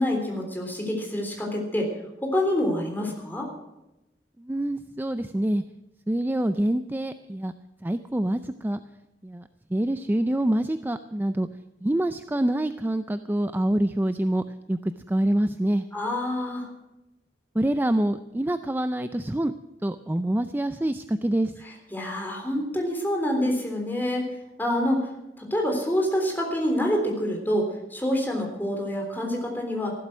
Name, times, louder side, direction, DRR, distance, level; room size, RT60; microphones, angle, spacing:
voice 1, 0.0-1.9 2.2-3.5 15.9-16.7 21.9-24.3 24.6-25.1 25.4-29.9, left 1 dB, 10° left, 1 dB, 3.5 m, -26 dB
voice 2, 4.4-5.6 6.1-7.5 7.8-8.8 9.2-11.5 11.8-15.9 17.5-19.5 19.8-21.5, right 1 dB, 10° right, 10 dB, 0.4 m, -26 dB
14.5 x 12.5 x 6.2 m, 0.92 s
head